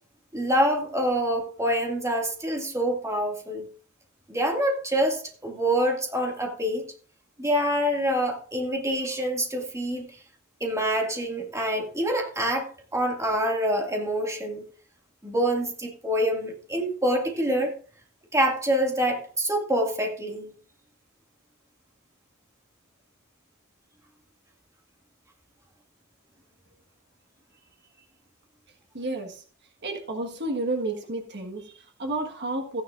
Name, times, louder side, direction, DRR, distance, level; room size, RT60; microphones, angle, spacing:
voice 1, 0.3-3.7 4.3-6.8 7.4-10.1 10.6-14.6 15.2-17.7 18.3-20.5, equal, 15° right, 2.0 m, -26 dB
voice 2, 28.9-29.4 29.8-32.8, right 2 dB, 55° right, 1.4 m, -31 dB
14.5 x 10.0 x 2.5 m
head